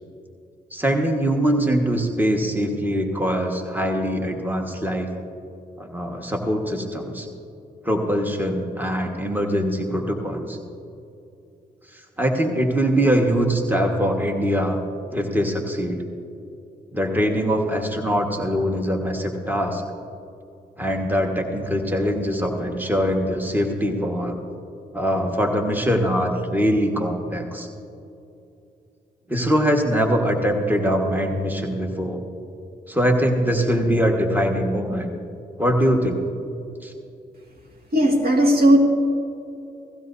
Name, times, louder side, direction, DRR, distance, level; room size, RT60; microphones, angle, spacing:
voice 1, 0.7-5.1 5.8-7.3 7.8-10.6 11.9-14.8 15.1-16.0 16.9-19.8 20.8-24.4 24.9-27.7 29.3-32.2 32.9-35.1 35.6-36.2 36.8-36.9, equal, 10° right, 2 dB, 1.5 m, -22 dB
voice 2, 37.9-38.8, right 1 dB, 60° right, 2 dB, 2.0 m, -16 dB
17.5 x 15.5 x 2.7 m, 2.7 s
cardioid pair, 60°, 18 cm